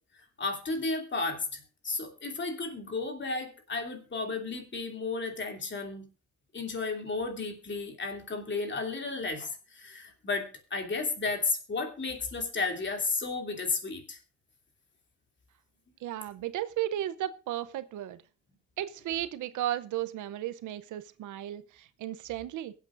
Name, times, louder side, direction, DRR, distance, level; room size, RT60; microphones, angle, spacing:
voice 1, 0.4-6.1 6.5-14.2, left 3 dB, 40° left, 4 dB, 2.8 m, -33 dB
voice 2, 16.0-18.2 18.8-22.7, right 12 dB, 80° right, 15 dB, 0.7 m, -34 dB
22.5 x 8.2 x 2.5 m, 0.35 s
cardioid pair, 90°, 30 cm